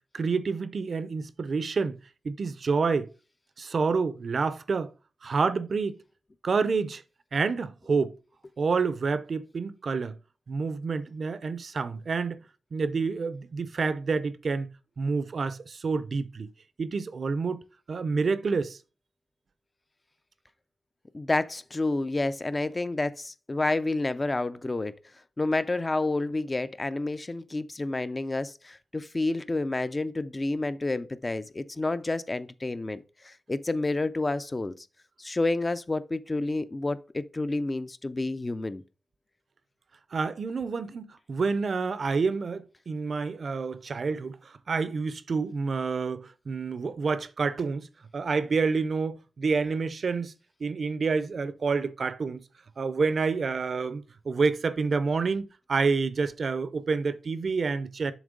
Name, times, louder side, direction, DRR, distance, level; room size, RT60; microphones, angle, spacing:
voice 1, 0.1-2.0 2.2-3.1 3.6-4.9 5.2-6.0 6.4-7.0 7.3-8.2 8.6-10.1 10.5-12.4 12.7-14.7 15.0-16.5 16.8-17.6 17.9-18.8 40.1-47.9 48.1-50.3 50.6-52.4 52.8-58.1, right 4 dB, 55° right, 0.5 m, -28 dB
voice 2, 21.1-24.9 25.4-34.7 35.2-38.8, left 2 dB, 25° left, 0.4 m, -29 dB
7.1 x 3.1 x 5.1 m
wide cardioid pair, 120°, 0 cm